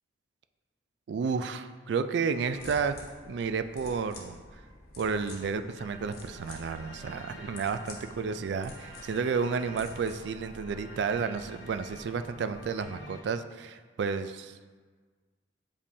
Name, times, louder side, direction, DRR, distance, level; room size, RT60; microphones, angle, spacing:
voice 1, 1.1-3.0 3.3-4.4 5.0-14.7, right 5 dB, 65° right, 10 dB, 0.3 m, -31 dB
sound 1, 2.4-12.8, left 1 dB, 55° left, 0.9 m, -50 dB
sound 2, 5.7-13.2, left 1 dB, 75° left, 1.0 m, -48 dB
6.9 x 5.2 x 2.7 m, 1.5 s
head